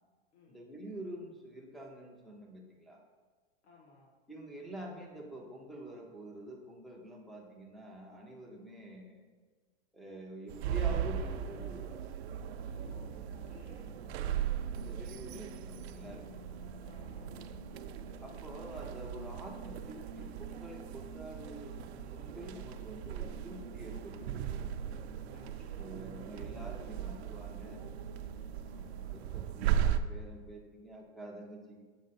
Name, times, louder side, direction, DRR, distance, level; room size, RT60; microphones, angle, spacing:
voice 1, 0.5-3.0 4.3-9.3 9.9-12.0 14.7-16.4 18.2-24.7 25.8-27.9 28.7-28.9 29.1-31.8, right 1 dB, ahead, -1 dB, 0.3 m, -47 dB
voice 2, 3.6-4.1 12.7-13.9 16.8-17.4 25.3-25.9, left 4 dB, 80° left, -1 dB, 1.5 m, -60 dB
sound 1, 10.5-30.0, right 10 dB, 70° right, 0.5 m, -38 dB
sound 2, 12.3-29.4, left 1 dB, 55° left, 0.9 m, -53 dB
7.5 x 4.4 x 4.1 m, 1.5 s
supercardioid pair, 150°, 33 cm